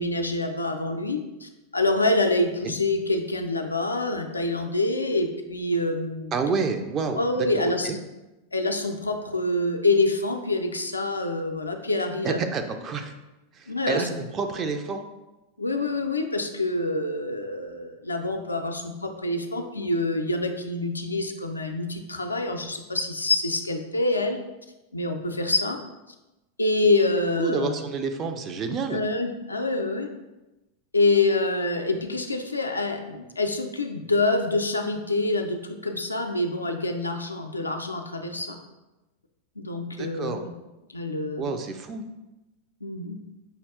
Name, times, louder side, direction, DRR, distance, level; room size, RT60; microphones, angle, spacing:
voice 1, 0.0-6.3 7.2-7.9 8.5-12.4 13.7-14.1 15.6-24.4 24.9-25.8 26.6-27.8 28.9-30.1 30.9-38.6 39.6-40.5 40.9-41.5 42.8-43.2, left 2 dB, 80° left, 5 dB, 0.4 m, -26 dB
voice 2, 6.3-8.0 12.2-13.1 13.5-15.0 27.4-29.0 40.0-40.4 41.4-42.0, right 4 dB, 30° right, 6 dB, 0.4 m, -29 dB
5.4 x 2.3 x 3.5 m, 1.0 s
figure-of-eight pair, 90°, 0 cm